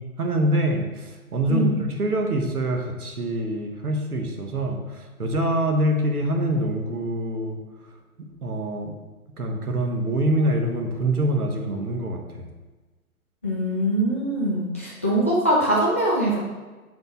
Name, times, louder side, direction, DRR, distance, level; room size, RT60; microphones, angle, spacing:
voice 1, 0.0-7.6 8.2-8.9 9.4-12.5, right 1 dB, 80° right, 3 dB, 1.3 m, -25 dB
voice 2, 1.5-1.8 13.4-16.4, right 1 dB, 10° left, -6 dB, 0.3 m, -22 dB
6.5 x 4.3 x 4.3 m, 1.3 s
figure-of-eight pair, 120°, 44 cm